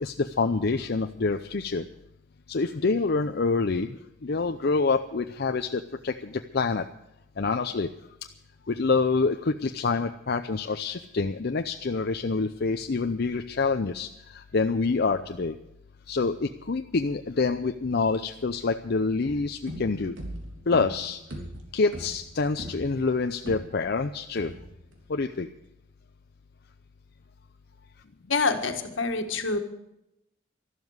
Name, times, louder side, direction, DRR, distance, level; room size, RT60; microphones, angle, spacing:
voice 1, 0.0-1.8 2.5-4.0 4.2-6.8 7.4-7.9 8.7-15.5 16.1-20.1 20.7-21.2 21.7-24.5 25.1-25.5, left 4 dB, 55° left, 6 dB, 0.6 m, -26 dB
sound 1, 19.2-24.0 24.4-24.9, equal, 80° right, 3.4 m, -40 dB
voice 2, 28.3-29.6, left 4 dB, 75° left, 6 dB, 1.7 m, -26 dB
13.0 x 12.0 x 7.9 m, 0.85 s
head